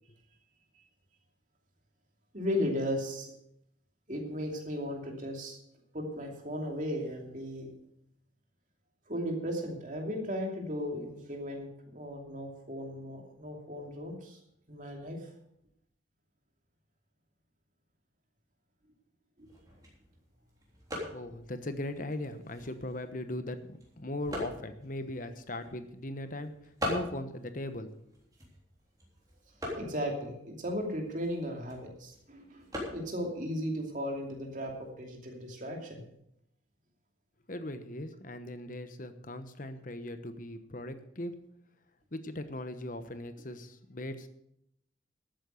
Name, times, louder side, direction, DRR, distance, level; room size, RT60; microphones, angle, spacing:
voice 1, 2.3-3.3 4.1-5.6 5.9-7.7 9.1-14.4 14.7-15.3 19.4-19.5 29.8-32.7 32.9-36.0, equal, 40° right, 1 dB, 2.7 m, -36 dB
sound 1, 19.4-34.9, left 1 dB, 20° right, 3.5 m, -44 dB
voice 2, 21.1-27.9 37.5-41.3 42.1-44.3, left 1 dB, 45° left, 10 dB, 1.1 m, -39 dB
12.5 x 8.9 x 6.5 m, 0.75 s
head